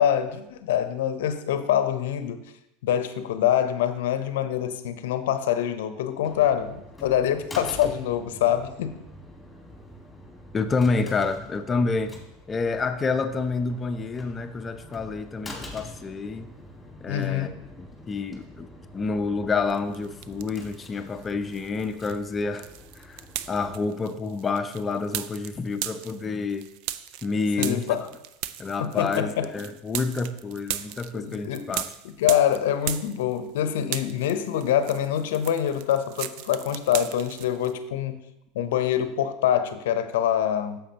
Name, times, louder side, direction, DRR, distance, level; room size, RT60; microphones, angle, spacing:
voice 1, 0.0-2.4 2.8-9.0 17.1-17.5 27.6-28.1 28.8-29.5 31.1-31.7 32.0-38.2 38.5-40.8, left 10 dB, 75° left, 11 dB, 0.7 m, -25 dB
sound 1, 6.2-23.8, left 1 dB, 10° left, 2.0 m, -45 dB
voice 2, 10.5-12.1 12.5-16.5 17.0-17.5 17.8-18.7 18.9-22.7 22.9-26.7 27.2-28.1 28.6-31.9, left 4 dB, 25° left, 9 dB, 0.6 m, -28 dB
sound 2, 19.7-20.9 21.2-33.6 33.8-37.7, right 12 dB, 60° right, 0.4 m, -37 dB
9.1 x 7.1 x 2.9 m, 0.87 s
hypercardioid pair, 85°, 0 cm